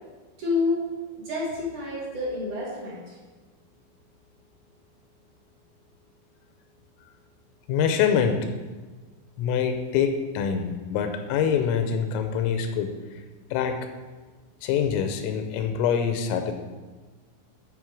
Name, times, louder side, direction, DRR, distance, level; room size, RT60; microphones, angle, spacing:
voice 1, 0.4-0.8 1.2-3.2, left 3 dB, 55° right, -5 dB, 2.4 m, -28 dB
voice 2, 7.7-8.5 9.4-13.2 13.5-13.9 14.6-16.5, left 7 dB, 85° left, 7 dB, 3.3 m, -25 dB
13.0 x 5.1 x 4.7 m, 1.3 s
omnidirectional pair, 5.9 m